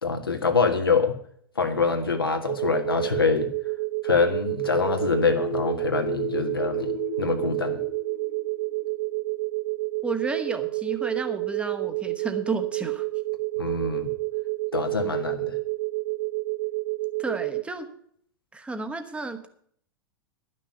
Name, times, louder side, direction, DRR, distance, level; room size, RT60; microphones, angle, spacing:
voice 1, 0.0-1.1 1.5-3.5 4.0-6.9 7.2-7.8 13.6-14.1 14.7-15.6, left 5 dB, 80° left, 4 dB, 1.7 m, -25 dB
sound 1, 2.5-17.6, right 23 dB, 45° right, 0.4 m, -29 dB
sound 2, 5.3-9.0, left 12 dB, 35° left, 0.7 m, -37 dB
voice 2, 10.0-13.1 17.2-17.9 18.5-19.5, right 3 dB, 10° right, 7 dB, 1.3 m, -32 dB
11.5 x 6.3 x 9.2 m, 0.63 s
figure-of-eight pair, 95°, 12 cm